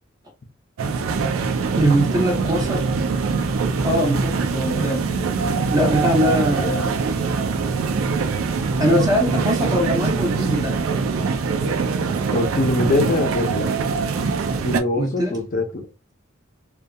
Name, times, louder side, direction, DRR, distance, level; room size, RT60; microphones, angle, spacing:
sound 1, 0.8-14.8, right 4 dB, 80° right, 0.4 m, -23 dB
voice 1, 1.8-2.9 3.8-5.0 5.7-7.0 8.8-10.8 15.0-15.4, equal, 20° right, 0.8 m, -21 dB
voice 2, 12.3-13.7 14.6-15.9, left 2 dB, 40° left, 0.5 m, -23 dB
2.7 x 2.2 x 2.2 m
head